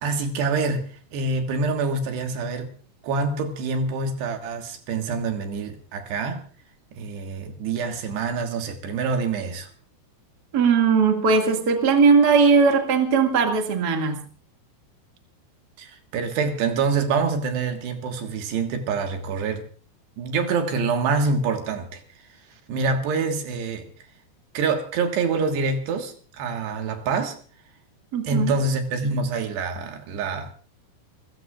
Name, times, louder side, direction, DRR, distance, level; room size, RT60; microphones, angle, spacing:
voice 1, 0.0-2.7 3.0-6.4 7.0-9.7 15.8-19.7 20.2-22.0 22.7-23.9 24.6-27.4 28.2-30.5, right 4 dB, 75° right, 3.8 m, -26 dB
voice 2, 10.5-14.2 28.1-28.5, right 5 dB, 35° right, 1.8 m, -19 dB
29.0 x 15.0 x 2.5 m
omnidirectional pair, 5.0 m